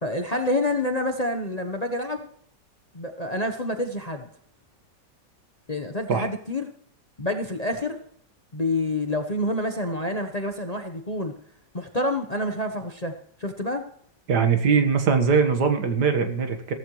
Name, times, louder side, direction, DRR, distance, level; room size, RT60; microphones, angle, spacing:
voice 1, 0.0-2.3 2.9-4.3 5.7-6.7 7.2-8.0 8.5-11.3 11.7-13.9, left 1 dB, 30° left, 5 dB, 0.9 m, -28 dB
voice 2, 14.3-16.7, right 6 dB, 70° right, 6 dB, 2.1 m, -21 dB
16.0 x 14.5 x 3.2 m, 0.62 s
omnidirectional pair, 1.9 m